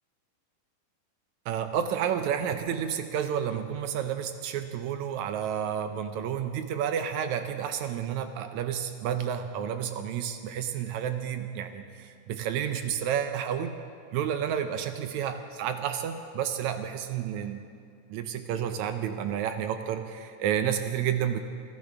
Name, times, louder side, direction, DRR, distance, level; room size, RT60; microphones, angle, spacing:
voice 1, 1.5-13.8 14.1-17.6 18.1-21.4, right 9 dB, 80° right, 8 dB, 1.7 m, -30 dB
25.5 x 14.0 x 3.4 m, 2.5 s
omnidirectional pair, 3.9 m